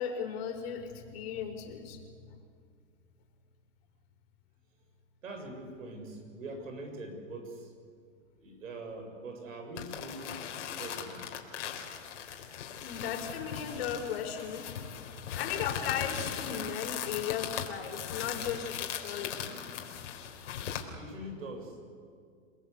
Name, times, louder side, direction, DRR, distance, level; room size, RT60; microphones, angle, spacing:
voice 1, 0.0-2.0 12.8-14.7 15.3-19.6, left 8 dB, 50° left, 4 dB, 4.5 m, -36 dB
voice 2, 5.2-7.7 8.3-10.4 10.8-11.4 20.7-21.9, right 2 dB, 85° right, 4 dB, 6.8 m, -43 dB
sound 1, 9.8-20.8, left 8 dB, 65° left, 4.0 m, -39 dB
29.0 x 20.0 x 8.3 m, 2.2 s
hypercardioid pair, 145°, 39 cm